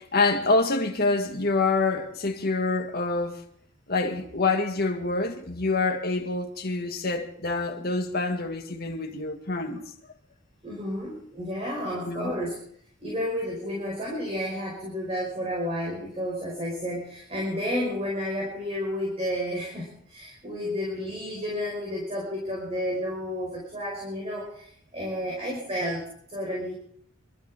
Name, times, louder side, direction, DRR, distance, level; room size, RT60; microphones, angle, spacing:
voice 1, 0.0-3.4 3.9-9.8 12.0-12.3, left 3 dB, 45° left, 2.0 m, -26 dB
voice 2, 10.6-12.6 13.0-26.7, equal, 30° right, 5.1 m, -31 dB
25.5 x 13.5 x 3.7 m
head